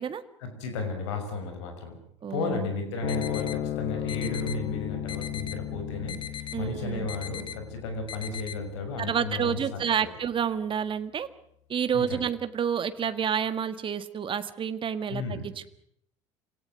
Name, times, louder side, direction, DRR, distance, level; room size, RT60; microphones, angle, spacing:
voice 1, 0.4-2.0 2.3-10.1 11.9-12.2 15.1-15.5, left 3 dB, 70° left, 6 dB, 6.0 m, -34 dB
voice 2, 2.2-2.7 6.5-7.1 9.0-11.3 11.7-15.7, right 8 dB, 35° right, 11 dB, 1.7 m, -29 dB
sound 1, 3.0-9.7, left 13 dB, 50° left, 1.2 m, -35 dB
sound 2, 3.1-3.6 4.1-4.6 5.1-5.6 6.1-6.6 7.1-7.6 8.1-8.6, left 8 dB, 35° left, 2.4 m, -39 dB
26.5 x 18.0 x 9.3 m, 0.71 s
figure-of-eight pair, 65°, 15 cm